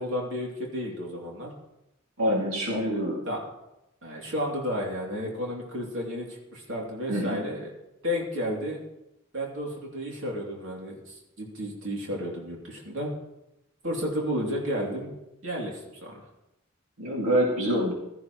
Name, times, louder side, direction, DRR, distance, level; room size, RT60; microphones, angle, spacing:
voice 1, 0.0-1.5 3.3-3.4 4.0-7.7 8.0-8.8 9.3-13.1 13.8-15.1 15.4-16.2, equal, 65° right, -2 dB, 2.9 m, -32 dB
voice 2, 2.2-3.2 7.1-7.4 17.0-17.9, equal, 90° right, -3 dB, 2.4 m, -25 dB
15.5 x 13.0 x 3.1 m, 0.88 s
head